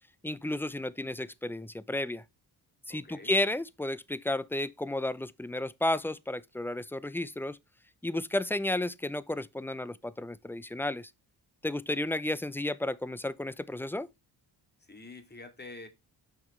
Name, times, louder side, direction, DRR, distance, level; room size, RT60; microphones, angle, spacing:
voice 1, 0.2-2.2 2.9-7.6 8.0-11.1 11.6-14.1, left 1 dB, 5° left, 0.5 m, -32 dB
voice 2, 2.9-3.3 14.8-15.9, left 3 dB, 20° left, 2.4 m, -47 dB
6.0 x 5.9 x 3.2 m
supercardioid pair, 60°, 45 cm